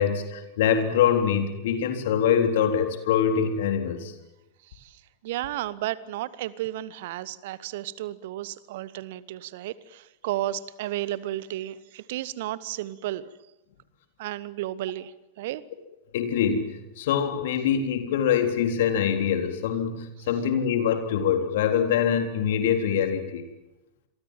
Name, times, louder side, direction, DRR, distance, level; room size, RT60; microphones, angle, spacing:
voice 1, 0.0-4.1 16.1-23.5, left 8 dB, 55° left, 6 dB, 3.8 m, -24 dB
voice 2, 5.2-13.2 14.2-15.1 15.4-15.6, right 14 dB, 50° right, 19 dB, 1.1 m, -33 dB
28.0 x 23.0 x 7.6 m, 0.96 s
figure-of-eight pair, 90°, 0 cm